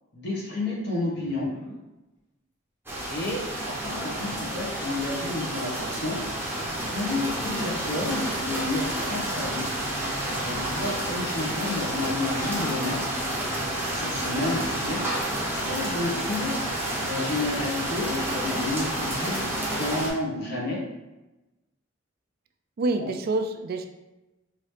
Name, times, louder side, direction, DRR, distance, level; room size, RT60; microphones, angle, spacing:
voice 1, 0.1-1.5 3.1-6.2 6.9-9.7 10.3-13.0 13.9-15.0 15.5-16.6 17.0-20.8 23.0-23.1, left 2 dB, 55° left, -4 dB, 1.3 m, -31 dB
sound 1, 1.1-1.8 3.8-4.6 5.2-5.3 6.6-7.2 9.5-10.2 12.0-14.9 17.1-17.4, equal, 30° left, 1.4 m, -43 dB
sound 2, 2.9-20.1, right 1 dB, 10° right, 0.7 m, -30 dB
voice 2, 22.8-23.8, right 2 dB, 50° right, 6 dB, 0.3 m, -27 dB
4.1 x 2.8 x 3.3 m, 1.0 s
head